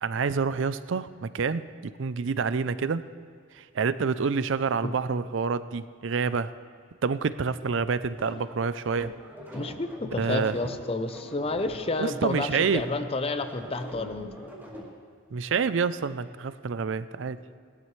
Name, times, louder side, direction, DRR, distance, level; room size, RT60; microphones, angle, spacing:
voice 1, 0.0-1.7 2.0-3.0 3.6-6.5 7.0-9.1 10.2-10.6 12.0-12.9 15.3-17.4, right 5 dB, 65° right, 14 dB, 0.4 m, -27 dB
sound 1, 8.1-14.9, equal, 10° right, 2.7 m, -43 dB
voice 2, 9.5-14.5, left 2 dB, 30° left, 9 dB, 0.6 m, -30 dB
19.5 x 12.5 x 3.2 m, 2.2 s
head